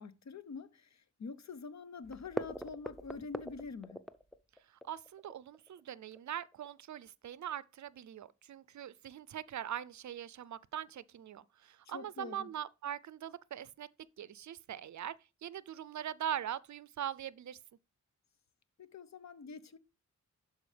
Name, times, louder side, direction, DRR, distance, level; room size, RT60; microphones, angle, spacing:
voice 1, 0.0-4.1 11.8-12.5 18.8-19.8, left 4 dB, 60° left, 0.8 m, -46 dB
sound 1, 2.0-6.7 7.0-7.1 7.5-7.6 7.9-8.0, equal, ahead, 0.6 m, -42 dB
voice 2, 4.7-13.9 14.2-15.1 15.4-17.6, right 10 dB, 65° right, 0.5 m, -42 dB
12.0 x 4.4 x 3.3 m
cardioid pair, 80°, 31 cm